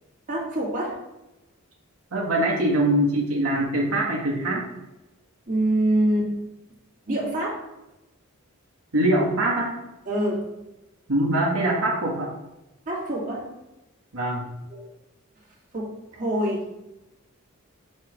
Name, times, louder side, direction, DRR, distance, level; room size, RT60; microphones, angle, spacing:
voice 1, 0.3-0.9 5.5-6.3 7.1-7.6 10.1-10.4 12.9-13.4 14.7-14.9 15.7-16.6, right 1 dB, 40° right, -5 dB, 2.3 m, -25 dB
voice 2, 2.1-4.6 8.9-9.7 11.1-12.3 14.1-14.5, right 1 dB, 85° right, -4 dB, 1.6 m, -23 dB
7.1 x 3.3 x 5.9 m, 0.97 s
head